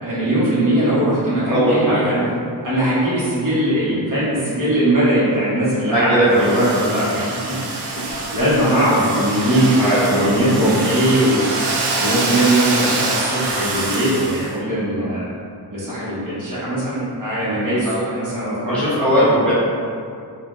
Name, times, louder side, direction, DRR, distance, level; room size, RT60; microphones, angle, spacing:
voice 1, 0.0-2.3 2.6-7.6 7.9-9.7 10.1-15.3 15.7-19.4, right 1 dB, 45° right, -11 dB, 1.1 m, -20 dB
voice 2, 1.4-2.1 5.9-6.6 9.8-10.3 15.0-15.1 18.7-19.5, right 1 dB, ahead, -12 dB, 0.8 m, -18 dB
Domestic sounds home sounds, 6.3-14.5, right 2 dB, 65° right, 0.5 m, -25 dB
3.5 x 2.2 x 2.5 m, 2.4 s
wide cardioid pair, 110°, 43 cm